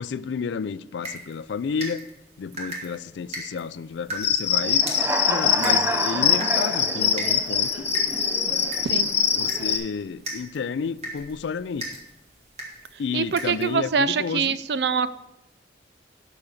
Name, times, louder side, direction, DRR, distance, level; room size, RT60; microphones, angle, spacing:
voice 1, 0.0-2.0 2.4-4.8 5.3-7.9 9.3-12.0 13.0-14.6, left 5 dB, 85° left, 0.4 m, -31 dB
sound 1, 1.0-13.8, right 1 dB, 35° right, 2.1 m, -40 dB
Cricket, 4.2-9.8, left 8 dB, 35° left, 0.7 m, -23 dB
Human voice / Cricket, 4.6-9.8, right 2 dB, 15° right, 0.6 m, -29 dB
voice 2, 13.1-15.1, right 6 dB, 70° right, 0.4 m, -24 dB
11.5 x 4.0 x 7.2 m
head